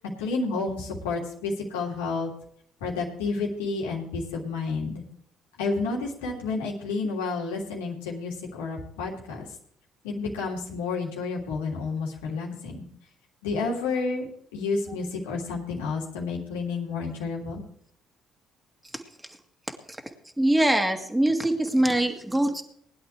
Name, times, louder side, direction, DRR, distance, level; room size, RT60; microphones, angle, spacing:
voice 1, 0.2-2.3 2.8-5.0 5.6-9.5 10.0-12.8 13.4-14.3 14.5-17.6, left 4 dB, 75° left, -2 dB, 3.0 m, -30 dB
voice 2, 20.4-22.6, right 1 dB, 10° right, 4 dB, 2.3 m, -23 dB
20.5 x 11.0 x 3.4 m, 0.65 s
figure-of-eight pair, 50°, 0 cm